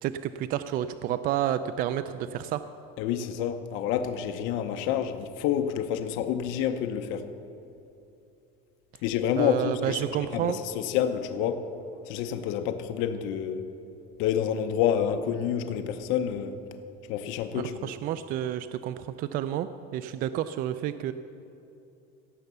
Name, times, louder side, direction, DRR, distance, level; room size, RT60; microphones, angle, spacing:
voice 1, 0.0-2.6 9.4-10.6 17.5-21.1, right 11 dB, 45° right, 12 dB, 0.4 m, -30 dB
voice 2, 3.0-7.3 9.0-10.0 10.5-11.6 12.1-13.6 14.2-16.6 17.1-17.9, left 9 dB, 65° left, 7 dB, 0.8 m, -28 dB
17.0 x 7.1 x 6.8 m, 2.8 s
cardioid pair, 150°, 21 cm